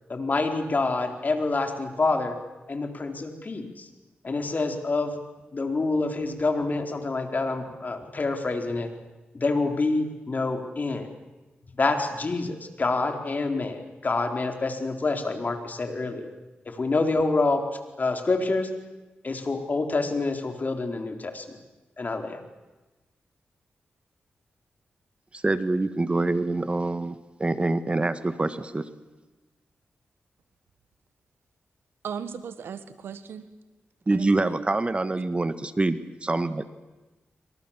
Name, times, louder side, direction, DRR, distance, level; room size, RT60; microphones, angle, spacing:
voice 1, 0.1-2.4 2.7-3.9 4.2-5.2 5.5-8.9 9.3-11.1 11.8-16.3 16.7-17.7 18.0-18.7 19.2-21.4 22.0-22.4, left 3 dB, 45° left, 5 dB, 4.2 m, -27 dB
voice 2, 25.3-28.9 34.1-36.6, right 2 dB, 30° right, 11 dB, 1.7 m, -26 dB
voice 3, 32.0-33.5 34.1-34.6, right 7 dB, 85° right, 11 dB, 1.6 m, -37 dB
27.0 x 25.0 x 7.5 m, 1.2 s
cardioid pair, 55°, 4 cm